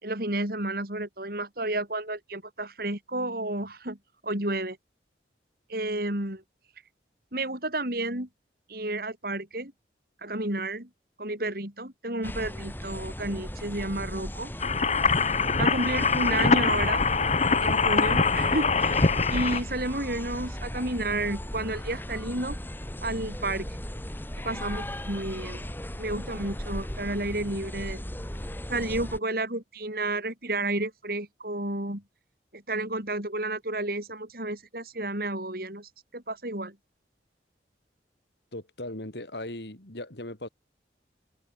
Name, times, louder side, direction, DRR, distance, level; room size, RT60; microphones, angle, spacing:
voice 1, 0.0-4.0 4.2-4.8 5.7-6.4 7.3-8.3 8.7-9.7 10.2-10.9 11.2-14.5 15.6-17.1 17.6-22.6 23.0-23.7 24.4-25.6 26.0-28.0 28.7-32.0 32.5-36.8, right 2 dB, 55° right, 6.2 m, -31 dB
sound 1, 12.2-29.2, equal, 10° left, 3.8 m, -37 dB
sound 2, 14.6-19.6, left 4 dB, 40° left, 1.2 m, -23 dB
voice 2, 38.5-40.5, left 1 dB, 70° left, 4.5 m, -38 dB
head